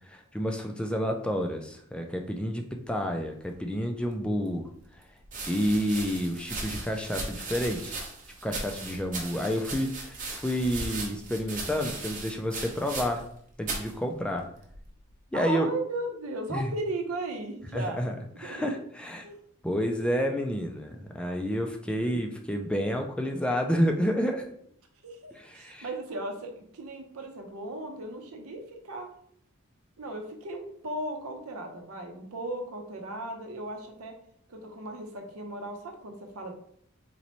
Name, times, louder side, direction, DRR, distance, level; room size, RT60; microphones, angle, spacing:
voice 1, 0.0-4.7 5.5-8.1 8.4-13.2 13.6-14.5 15.3-15.7 16.5-16.7 17.7-19.3 19.6-24.5 25.3-25.9, equal, 5° left, 3 dB, 0.3 m, -29 dB
sound 1, 4.2-4.3 5.2-13.4 13.6-13.9 14.7-15.1, right 3 dB, 35° right, 0.8 m, -37 dB
voice 2, 15.3-18.0 18.4-18.6 19.2-19.4 20.9-21.0 25.0-29.1 30.0-34.1 34.5-36.5, right 1 dB, 80° right, 3 dB, 0.8 m, -36 dB
4.0 x 3.0 x 3.0 m, 0.66 s
head